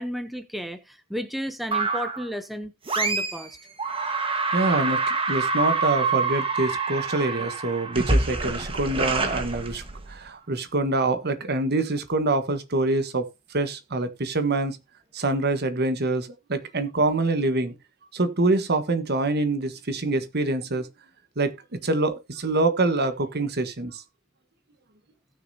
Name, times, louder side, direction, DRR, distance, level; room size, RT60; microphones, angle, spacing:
voice 1, 0.0-3.6, equal, ahead, 0.6 m, -33 dB
sound 1, 1.7-2.3 2.9-3.5 3.8-10.2, right 3 dB, 25° right, 1.3 m, -26 dB
voice 2, 4.5-14.8 15.1-17.7 18.1-20.9 21.4-24.0, right 2 dB, 50° right, 1.3 m, -25 dB
17.5 x 6.4 x 2.7 m
head